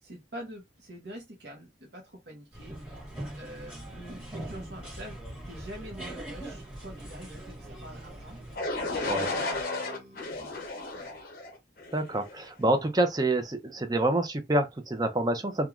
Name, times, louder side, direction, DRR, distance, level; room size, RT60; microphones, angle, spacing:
voice 1, 0.0-2.8 3.3-5.2 5.4-10.5 10.9-11.2, right 1 dB, 60° right, 0.8 m, -45 dB
sound 1, 2.5-8.6, right 1 dB, 5° right, 1.2 m, -42 dB
sound 2, 8.6-12.4, left 2 dB, 50° left, 0.7 m, -33 dB
voice 2, 11.9-15.7, right 1 dB, 20° right, 0.5 m, -27 dB
3.1 x 2.3 x 2.4 m
head